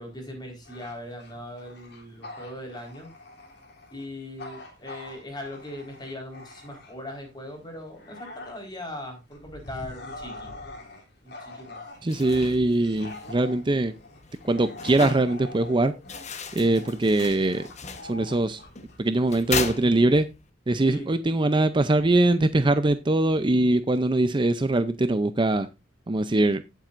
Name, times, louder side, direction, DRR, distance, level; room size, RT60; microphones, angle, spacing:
voice 1, 0.0-3.1 3.9-10.5 11.2-11.8 20.8-21.1, left 1 dB, 25° left, 1 dB, 4.4 m, -39 dB
Bark / Growling, 0.6-7.2 7.6-19.5, left 2 dB, 65° left, 3.1 m, -44 dB
sound 1, 11.9-20.5, left 5 dB, 40° left, 1.2 m, -37 dB
voice 2, 12.0-13.9 14.4-15.9 16.5-17.7 18.0-18.6 19.0-20.3 20.7-25.7 26.1-26.6, right 2 dB, 25° right, 11 dB, 0.5 m, -22 dB
17.0 x 7.4 x 2.6 m, 0.24 s
head